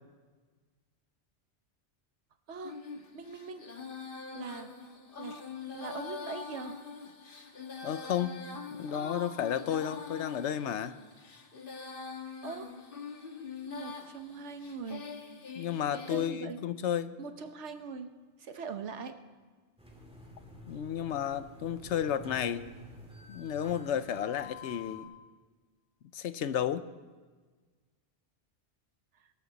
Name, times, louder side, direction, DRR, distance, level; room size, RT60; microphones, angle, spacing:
Female singing, 2.6-16.3, left 5 dB, 50° left, 1.6 m, -44 dB
voice 1, 3.1-3.6 4.3-4.7 5.2-5.4 5.7-6.7 12.4-12.7 13.7-15.0 15.9-16.6 17.2-18.1 18.4-19.1, right 5 dB, 80° right, 8 dB, 1.3 m, -41 dB
voice 2, 7.8-8.4 8.7-11.0 15.6-17.1 20.7-22.7 23.3-25.1 26.1-26.9, left 9 dB, 80° left, 13 dB, 1.0 m, -32 dB
sound 1, 19.8-25.0, left 2 dB, 5° right, 2.4 m, -49 dB
23.0 x 13.0 x 4.1 m, 1.4 s
omnidirectional pair, 1.2 m